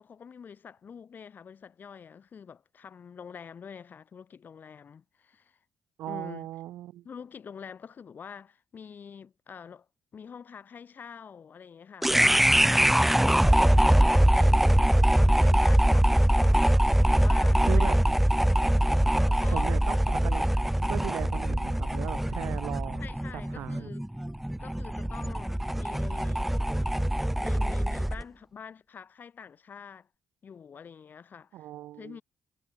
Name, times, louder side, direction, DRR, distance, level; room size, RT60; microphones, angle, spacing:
voice 1, 0.0-5.6 6.1-6.5 7.0-9.9 10.1-18.0 19.2-19.7 23.0-24.1 24.6-26.5 27.4-30.1 30.4-31.7 32.0-32.2, left 6 dB, 55° left, 3.5 m, -46 dB
voice 2, 6.0-7.1 17.6-18.0 19.5-20.4 20.8-23.0 23.5-23.9 31.5-32.2, right 14 dB, 80° right, 0.5 m, -37 dB
sound 1, 12.0-28.2, right 1 dB, 5° right, 0.5 m, -23 dB
supercardioid pair, 65°, 4 cm